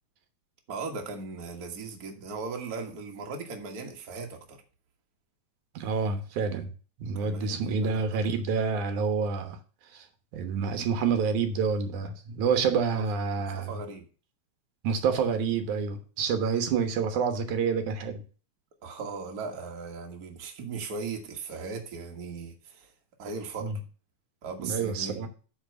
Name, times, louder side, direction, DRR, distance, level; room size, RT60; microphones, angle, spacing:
voice 1, 0.7-4.6 7.1-8.2 12.5-12.7 13.0-13.1 13.6-14.0 18.8-22.9 23.2-23.7 24.4-25.3, right 4 dB, 40° right, 1.7 m, -38 dB
voice 2, 5.8-6.7 7.0-9.6 9.9-10.1 10.3-13.7 14.8-18.2 23.6-23.7 24.6-25.3, right 5 dB, 90° right, 2.7 m, -28 dB
8.8 x 4.6 x 6.8 m
omnidirectional pair, 3.4 m